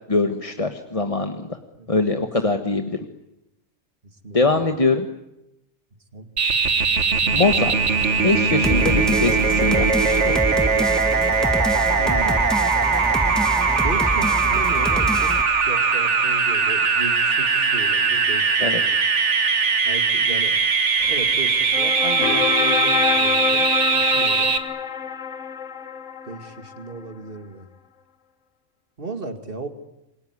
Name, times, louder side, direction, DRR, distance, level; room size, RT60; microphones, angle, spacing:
voice 1, 0.1-1.6 1.9-3.0 4.3-5.1 7.3-7.8 8.2-10.4 18.6-18.8, left 3 dB, 25° left, 6 dB, 1.3 m, -22 dB
voice 2, 1.7-2.2 4.0-4.6 6.1-6.3 12.0-12.6 13.7-19.0 19.8-20.6 21.0-23.7 23.9-24.5 26.3-27.7 29.0-29.7, right 3 dB, 40° right, 7 dB, 2.4 m, -35 dB
sound 1, 6.4-24.6, right 5 dB, 55° right, 1.8 m, -20 dB
sound 2, 8.6-15.4, equal, ahead, 1.4 m, -26 dB
sound 3, 21.0-26.9, left 6 dB, 65° left, 1.8 m, -26 dB
27.5 x 22.5 x 9.7 m, 0.89 s
omnidirectional pair, 1.4 m